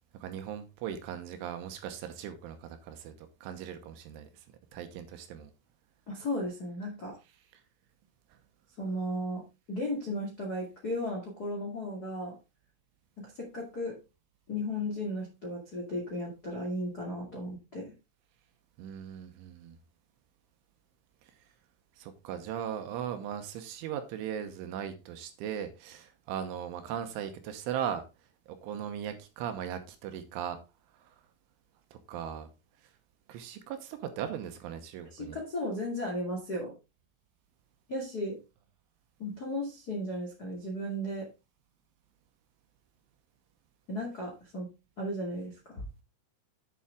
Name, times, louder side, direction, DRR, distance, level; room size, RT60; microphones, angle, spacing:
voice 1, 0.2-4.4 4.7-5.5 18.8-19.8 22.0-28.0 28.5-30.6 31.0-31.2 31.9-32.5 33.3-35.4, right 9 dB, 75° right, 3.2 m, -38 dB
voice 2, 6.1-7.2 8.8-12.4 13.2-14.0 14.5-17.9 35.1-36.7 37.9-38.4 39.2-41.3 43.9-44.7 45.0-45.9, left 1 dB, 70° left, 0.9 m, -35 dB
8.5 x 6.9 x 3.7 m
omnidirectional pair, 6.0 m